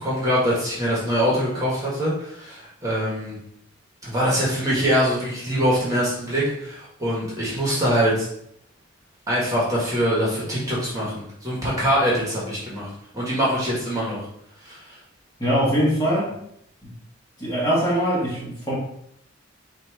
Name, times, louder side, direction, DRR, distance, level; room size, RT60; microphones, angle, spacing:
voice 1, 0.0-3.3 4.0-8.3 9.3-12.9 13.1-14.2 14.6-14.8, equal, 15° right, -6 dB, 1.4 m, -23 dB
voice 2, 15.4-16.4 16.8-16.9 17.4-18.7, equal, 20° left, -7 dB, 1.5 m, -22 dB
4.0 x 2.7 x 4.6 m, 0.73 s
head